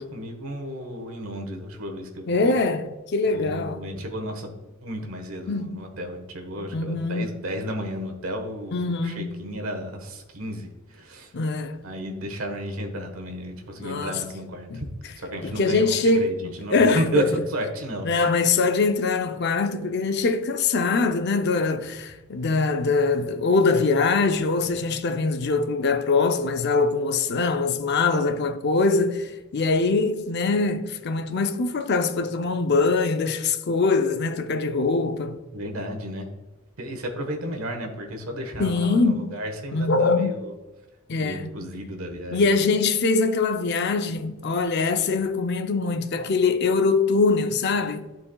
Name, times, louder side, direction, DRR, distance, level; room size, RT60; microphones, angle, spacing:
voice 1, 0.0-2.5 3.3-11.3 11.8-14.8 15.2-18.3 35.5-36.3 36.8-40.5 41.2-42.5, equal, 80° right, 1.3 m, -33 dB
voice 2, 2.3-3.8 5.5-5.9 6.6-7.3 8.7-9.3 11.3-11.8 13.8-14.2 14.7-14.8 15.4-16.3 16.7-17.3 18.0-35.4 38.6-39.3 39.7-40.4 41.1-41.5 42.3-48.1, left 3 dB, 50° left, 0.5 m, -23 dB
11.5 x 4.6 x 2.3 m
head